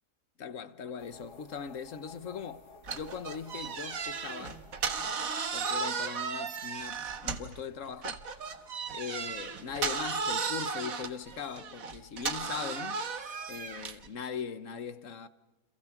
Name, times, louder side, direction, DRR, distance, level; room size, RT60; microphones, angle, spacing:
voice 1, 0.4-4.6 5.5-8.2 8.9-13.0 13.5-15.3, left 6 dB, 55° left, 1.4 m, -40 dB
sound 1, 1.0-7.9, left 4 dB, 80° left, 3.0 m, -55 dB
sound 2, 2.8-7.6 8.0-14.1, right 5 dB, 60° right, 1.8 m, -35 dB
29.5 x 27.0 x 6.0 m
omnidirectional pair, 1.7 m